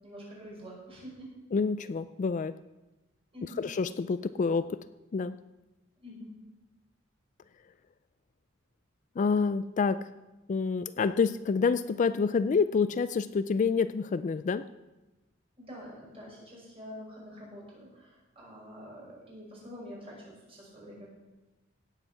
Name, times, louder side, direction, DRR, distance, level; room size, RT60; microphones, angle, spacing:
voice 1, 0.0-1.3 3.3-3.6 6.0-6.4 15.6-21.1, equal, 30° right, -4 dB, 5.8 m, -46 dB
voice 2, 1.5-2.5 3.6-4.8 5.1-5.4 9.2-10.1 10.5-14.7, left 5 dB, 40° left, 13 dB, 0.3 m, -28 dB
16.5 x 8.1 x 5.8 m, 1.1 s
head